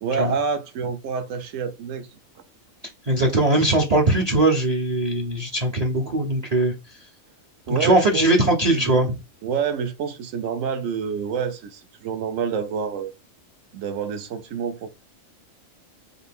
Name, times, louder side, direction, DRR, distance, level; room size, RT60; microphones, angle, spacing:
voice 1, 0.0-2.1 7.7-8.3 8.7-9.0 9.4-13.1 13.7-14.9, right 6 dB, 70° right, 1.0 m, -27 dB
voice 2, 3.0-7.0 7.7-9.1, right 2 dB, 40° right, 0.6 m, -20 dB
4.0 x 2.7 x 3.4 m
omnidirectional pair, 1.4 m